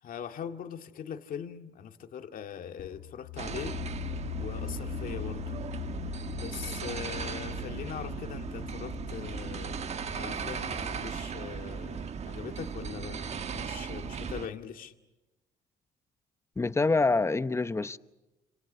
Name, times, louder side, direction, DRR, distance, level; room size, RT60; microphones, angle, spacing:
voice 1, 0.0-3.8 4.4-5.6 6.3-9.8 10.2-14.9, left 8 dB, 55° left, 2.1 m, -41 dB
sound 1, 2.8-12.4, left 20 dB, 85° left, 2.2 m, -42 dB
sound 2, 3.4-14.5, right 6 dB, 40° right, 1.2 m, -37 dB
voice 2, 16.6-18.0, left 3 dB, 15° left, 0.9 m, -26 dB
29.5 x 27.5 x 5.6 m
cardioid pair, 110°, 17 cm